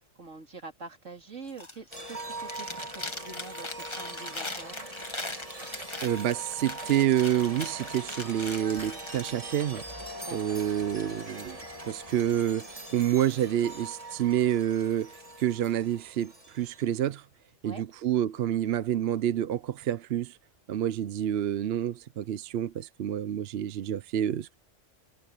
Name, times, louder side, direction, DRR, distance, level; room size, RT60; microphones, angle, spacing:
voice 1, 0.2-4.8 10.3-10.6 17.6-17.8, right 4 dB, 75° right, 3.5 m, -45 dB
Chewing mastication, 1.5-2.0 2.3-9.3, left 2 dB, 25° left, 1.8 m, -40 dB
sound 1, 1.9-17.0, right 2 dB, 30° right, 2.9 m, -42 dB
voice 2, 6.0-9.8 10.3-11.6 11.8-12.7 12.9-17.2 17.6-20.4 20.7-24.5, right 11 dB, 60° right, 0.8 m, -28 dB
omnidirectional pair, 1.3 m